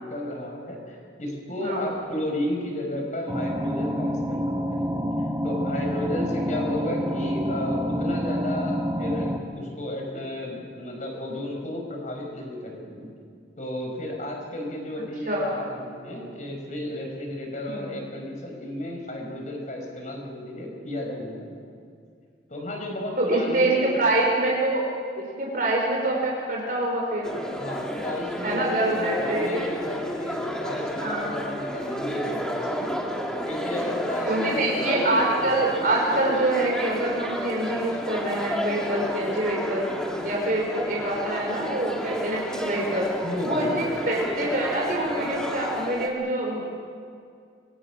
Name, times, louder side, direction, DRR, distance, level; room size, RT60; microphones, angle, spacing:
voice 1, 0.0-5.1 5.4-13.1 13.6-21.7 22.5-23.8 27.5-32.9 33.5-35.2 43.2-43.9, left 1 dB, 45° left, 1 dB, 5.6 m, -33 dB
sound 1, 3.3-9.4, equal, 15° right, 1.4 m, -27 dB
voice 2, 17.7-18.0 23.2-24.8 25.2-27.3 28.4-29.7 31.0-31.4 34.3-39.9 40.2-43.1 43.4-46.8, right 1 dB, 50° right, -2 dB, 4.5 m, -25 dB
sound 2, 27.2-46.1, equal, 5° left, 2.4 m, -31 dB
25.5 x 24.5 x 6.3 m, 2.3 s
head